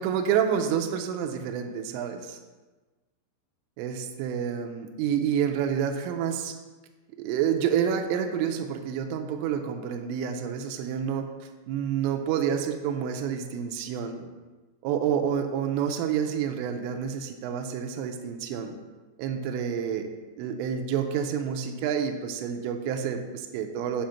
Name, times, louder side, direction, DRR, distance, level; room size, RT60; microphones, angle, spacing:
voice 1, 0.0-2.4 3.8-6.5 7.2-14.3 14.8-18.8 19.2-20.1 20.4-24.1, right 8 dB, 85° right, 5 dB, 2.6 m, -28 dB
7.4 x 2.9 x 5.6 m, 1.2 s
omnidirectional pair, 5.6 m